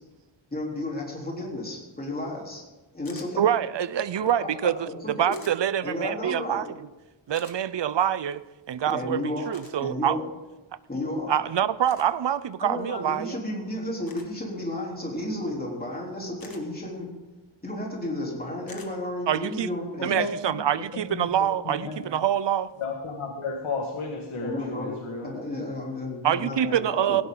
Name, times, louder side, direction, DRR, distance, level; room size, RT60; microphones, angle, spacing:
voice 1, 0.5-2.6 2.9-3.5 4.2-5.3 5.8-6.7 8.9-9.5 9.8-10.3 10.9-11.3 12.6-17.1 17.6-20.1 24.4-24.9 25.2-27.2, left 1 dB, 20° left, -2 dB, 3.6 m, -33 dB
sound 1, 3.0-3.3 5.3-5.5 7.3-7.6 9.5-9.7 11.8-12.1 14.1-14.3 16.4-16.6 18.7-18.9, left 4 dB, 45° left, 1.8 m, -47 dB
voice 2, 3.4-6.6 7.3-8.4 8.7-10.2 11.3-13.4 19.3-19.7 20.0-22.7 26.2-27.2, right 10 dB, 60° right, 16 dB, 0.6 m, -25 dB
voice 3, 20.0-20.6 20.9-21.3 21.6-22.1 22.8-25.3, left 3 dB, 80° left, -1 dB, 2.2 m, -33 dB
16.5 x 16.5 x 3.9 m, 1.1 s
wide cardioid pair, 175°, 49 cm